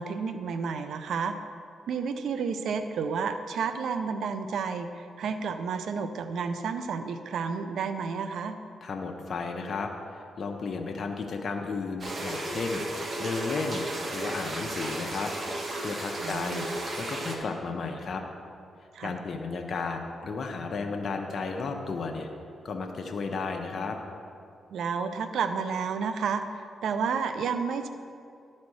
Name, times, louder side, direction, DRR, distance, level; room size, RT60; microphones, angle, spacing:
voice 1, 0.0-1.3 1.9-8.6 16.2-16.7 18.9-19.1 24.7-26.4 26.8-27.9, right 5 dB, 80° right, 8 dB, 0.5 m, -31 dB
voice 2, 8.8-15.3 15.8-16.7 16.9-18.2 19.0-22.3 22.6-24.0, left 4 dB, 60° left, 3 dB, 0.8 m, -33 dB
sound 1, 12.0-17.4, right 1 dB, 45° right, 1.3 m, -34 dB
11.5 x 4.2 x 6.3 m, 2.4 s
cardioid pair, 65°, 0 cm